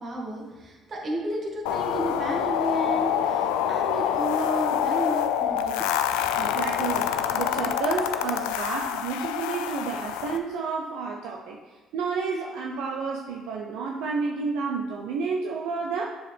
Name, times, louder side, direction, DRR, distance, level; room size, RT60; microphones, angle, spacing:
voice 1, 0.0-6.2, right 1 dB, 45° right, -1 dB, 2.2 m, -32 dB
sound 1, 1.7-10.4, left 9 dB, 85° left, 0.4 m, -26 dB
voice 2, 6.4-7.1 7.3-11.6 11.9-16.0, right 5 dB, 75° right, -1 dB, 0.7 m, -30 dB
7.4 x 6.3 x 3.5 m, 1.2 s
hypercardioid pair, 60°, 0 cm